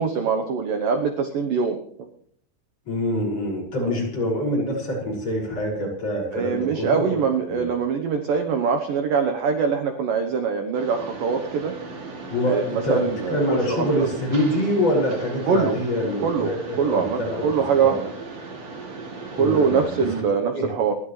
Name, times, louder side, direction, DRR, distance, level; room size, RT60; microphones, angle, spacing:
voice 1, 0.0-1.8 3.8-4.0 6.3-11.7 12.5-13.9 15.5-15.8 16.2-18.1 19.4-20.9, right 6 dB, 75° right, 5 dB, 2.0 m, -23 dB
voice 2, 2.9-7.1 7.5-7.7 12.3-17.5 17.7-17.9 19.4-20.1 20.5-20.7, equal, 30° left, -3 dB, 6.9 m, -25 dB
Mechanisms, 10.7-20.2, right 3 dB, 40° right, 3.2 m, -37 dB
29.5 x 13.0 x 3.3 m, 0.64 s
omnidirectional pair, 5.6 m